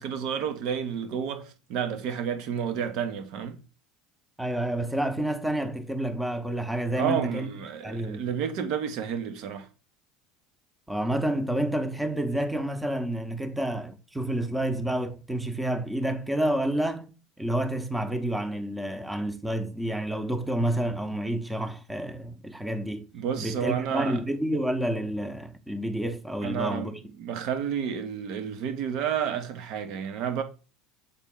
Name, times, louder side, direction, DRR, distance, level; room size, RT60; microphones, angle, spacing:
voice 1, 0.0-3.6 7.0-9.7 23.1-24.2 26.4-30.4, right 8 dB, 60° right, 1.0 m, -30 dB
voice 2, 4.4-7.5 7.8-8.2 10.9-17.1 17.4-23.1 23.4-27.0, right 1 dB, 5° right, 0.9 m, -29 dB
6.9 x 4.1 x 3.7 m
hypercardioid pair, 75°, 0 cm